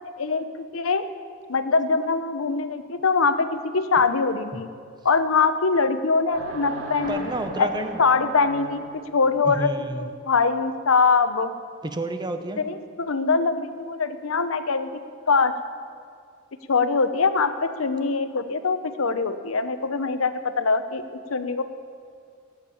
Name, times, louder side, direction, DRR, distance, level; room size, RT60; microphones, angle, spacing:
voice 1, 0.2-1.0 1.5-3.5 3.7-4.7 5.0-7.3 7.6-7.7 8.0-8.8 9.1-9.7 10.0-11.5 12.6-14.9 15.3-15.5 16.7-21.6, left 4 dB, 85° left, 10 dB, 0.8 m, -23 dB
sound 1, 6.3-9.2, right 2 dB, 75° right, 2.3 m, -36 dB
voice 2, 7.1-8.0 9.4-10.1 11.8-12.6, right 2 dB, 20° right, 8 dB, 0.8 m, -30 dB
17.5 x 7.3 x 8.6 m, 2.2 s
head